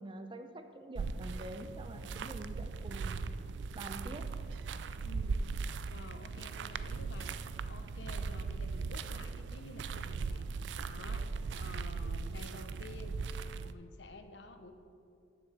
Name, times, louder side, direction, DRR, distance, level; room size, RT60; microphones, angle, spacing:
voice 1, 0.0-3.2 3.7-4.3, right 1 dB, 30° right, 7 dB, 0.6 m, -46 dB
sound 1, 0.9-13.7, right 4 dB, 85° right, 0.4 m, -39 dB
voice 2, 5.0-5.4 5.9-10.5 10.9-13.2 13.5-14.7, left 2 dB, 90° left, 7 dB, 0.9 m, -51 dB
7.3 x 6.6 x 7.3 m, 2.6 s
head